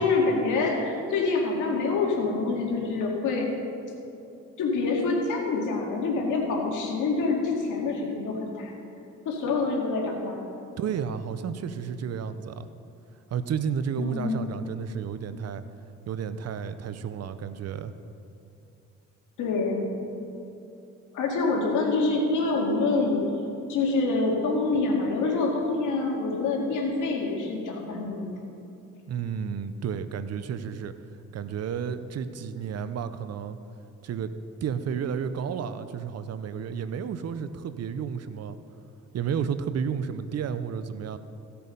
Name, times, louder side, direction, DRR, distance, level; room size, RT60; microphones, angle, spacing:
voice 1, 0.0-3.5 4.6-8.7 9.3-10.4 14.0-14.4 19.4-19.9 21.1-23.2 23.7-28.3, left 3 dB, 80° left, -1 dB, 2.2 m, -26 dB
voice 2, 10.8-12.7 13.3-15.6 16.1-17.9 29.1-30.9 31.3-33.6 34.0-34.3 34.6-38.6 39.1-41.2, right 7 dB, 55° right, 12 dB, 0.7 m, -32 dB
15.5 x 6.8 x 5.3 m, 2.7 s
cardioid pair, 90°, 30 cm